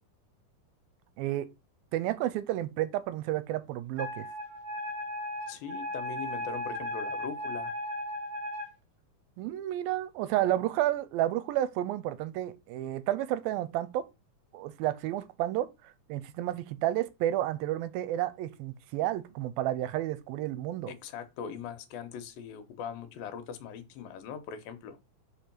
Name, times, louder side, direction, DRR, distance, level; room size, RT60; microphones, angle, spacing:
voice 1, 1.2-1.5 1.9-4.3 9.4-14.1 14.5-15.7 16.1-20.9, right 13 dB, 85° right, 2.5 m, -31 dB
Wind instrument woodwind instrument, 4.0-8.7, left 1 dB, 35° right, 2.1 m, -36 dB
voice 2, 5.5-7.7 20.9-25.0, left 7 dB, 80° left, 2.6 m, -41 dB
5.3 x 4.9 x 5.9 m
omnidirectional pair, 4.2 m